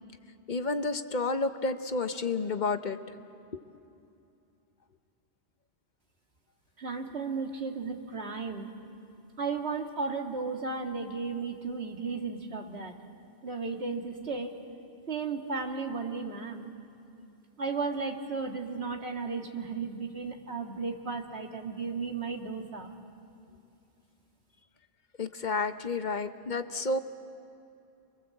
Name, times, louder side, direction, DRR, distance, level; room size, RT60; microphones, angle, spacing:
voice 1, 0.5-3.0 3.5-3.6 25.2-27.0, left 3 dB, 45° left, 9 dB, 1.0 m, -30 dB
voice 2, 6.8-8.7 9.4-12.9 13.4-14.6 15.1-16.7 17.6-22.9, right 4 dB, 75° right, 3 dB, 2.3 m, -34 dB
29.0 x 23.0 x 7.8 m, 2.7 s
omnidirectional pair, 1.1 m